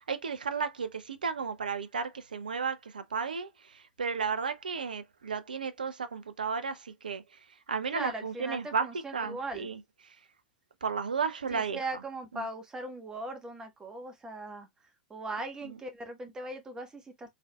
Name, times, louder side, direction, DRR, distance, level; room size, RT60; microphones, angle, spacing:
voice 1, 0.1-7.2 7.7-8.9 9.1-9.8 10.8-11.8 12.3-12.5 15.6-15.8, right 5 dB, 80° right, 0.4 m, -33 dB
voice 2, 7.9-9.7 11.5-14.7 15.1-17.3, right 2 dB, 15° right, 1.2 m, -39 dB
3.8 x 3.3 x 2.2 m
figure-of-eight pair, 95°, 5 cm